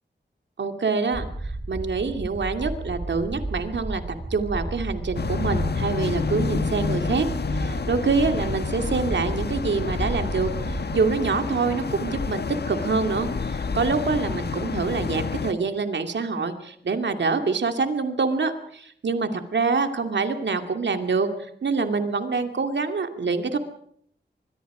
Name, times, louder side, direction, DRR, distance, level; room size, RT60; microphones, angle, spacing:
voice 1, 0.6-1.3 1.7-4.0 4.3-7.3 7.5-23.6, right 4 dB, 70° right, 7 dB, 2.5 m, -25 dB
sound 1, 1.1-11.3, right 2 dB, 35° right, 4.5 m, -33 dB
sound 2, 5.1-15.5, left 5 dB, 60° left, 1.4 m, -29 dB
25.0 x 22.0 x 5.0 m, 0.63 s
wide cardioid pair, 80°, 19 cm